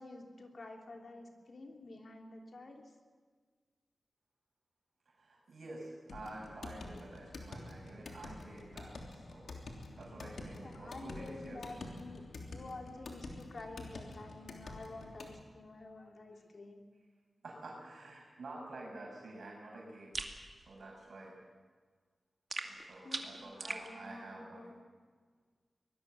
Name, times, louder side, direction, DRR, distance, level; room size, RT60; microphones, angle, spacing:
voice 1, 0.0-3.0 10.6-16.8 23.0-24.8, left 2 dB, 50° left, 2 dB, 3.0 m, -50 dB
voice 2, 5.1-9.5 9.9-11.6 17.4-21.4 22.6-24.7, right 2 dB, 70° right, -2 dB, 6.0 m, -49 dB
sound 1, 6.1-15.4, left 2 dB, 80° left, 3.2 m, -48 dB
sound 2, 20.1-20.4 22.5-23.9, right 3 dB, 40° right, 2.1 m, -40 dB
24.0 x 19.5 x 7.5 m, 1.5 s
wide cardioid pair, 120°, 0 cm